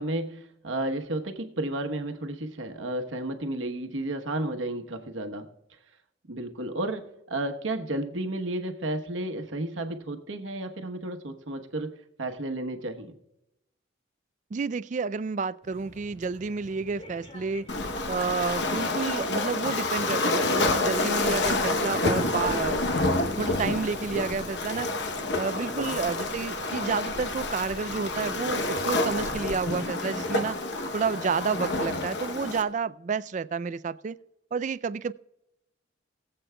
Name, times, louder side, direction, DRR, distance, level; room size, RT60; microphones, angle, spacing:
voice 1, 0.0-5.5 6.3-13.2 25.6-26.0, right 1 dB, 80° right, 5 dB, 1.1 m, -32 dB
voice 2, 14.5-17.7 18.1-22.8 23.3-24.9 25.4-30.6 30.9-34.2 34.5-35.1, right 5 dB, 40° right, 16 dB, 0.3 m, -30 dB
sound 1, 15.6-29.6, equal, 30° left, 2.0 m, -48 dB
Waves surf, 17.7-32.6, left 2 dB, 60° left, 0.9 m, -28 dB
22.0 x 7.8 x 2.2 m, 0.87 s
head